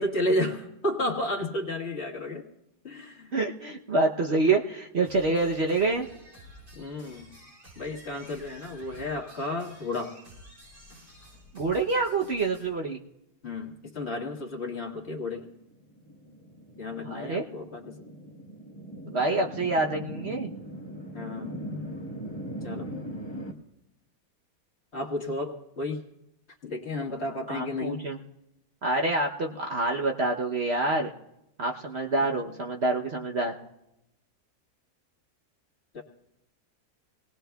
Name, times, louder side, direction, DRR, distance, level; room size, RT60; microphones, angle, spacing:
voice 1, 0.0-2.5 2.8-3.3 6.7-7.3 7.8-10.2 13.4-15.5 16.8-18.1 21.1-21.6 22.6-22.9 24.9-26.0 26.6-28.0 32.2-32.4 35.9-36.0, left 1 dB, 45° left, 0 dB, 1.8 m, -32 dB
voice 2, 3.3-6.1 11.5-13.0 17.0-17.4 19.1-20.5 27.5-28.2 28.8-31.1 31.6-33.5, right 3 dB, 50° right, 1 dB, 1.0 m, -27 dB
sound 1, 5.0-12.7, equal, 70° right, 7.8 m, -51 dB
sound 2, 15.8-23.5, equal, 20° left, 1.1 m, -39 dB
26.5 x 19.0 x 2.3 m, 0.88 s
omnidirectional pair, 1.6 m